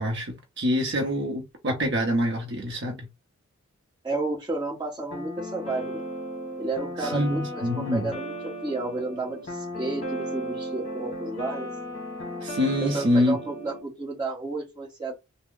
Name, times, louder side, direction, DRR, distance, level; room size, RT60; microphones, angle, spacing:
voice 1, 0.0-3.1 7.0-8.1 12.4-13.4, left 1 dB, 55° right, 0.7 m, -26 dB
voice 2, 4.0-6.0 6.6-11.7 12.8-15.1, right 3 dB, 20° right, 1.2 m, -32 dB
sound 1, 5.1-13.8, equal, 30° left, 1.1 m, -35 dB
3.3 x 2.1 x 3.6 m
head